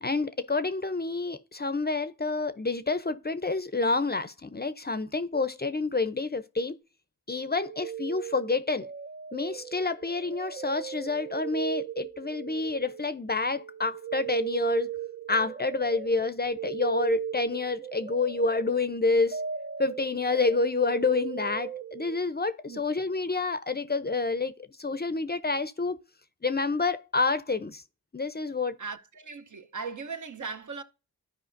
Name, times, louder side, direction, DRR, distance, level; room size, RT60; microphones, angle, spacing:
voice 1, 0.0-6.7 7.3-8.9 9.3-14.9 15.3-19.4 19.8-24.5 24.8-26.0 26.4-27.8 28.1-28.8, left 3 dB, 25° left, 0.5 m, -28 dB
sound 1, 7.3-13.3 13.6-22.2, right 9 dB, 35° right, 0.4 m, -38 dB
voice 2, 28.8-30.8, right 5 dB, 55° right, 0.8 m, -38 dB
13.0 x 4.9 x 2.6 m
cardioid pair, 55°, 37 cm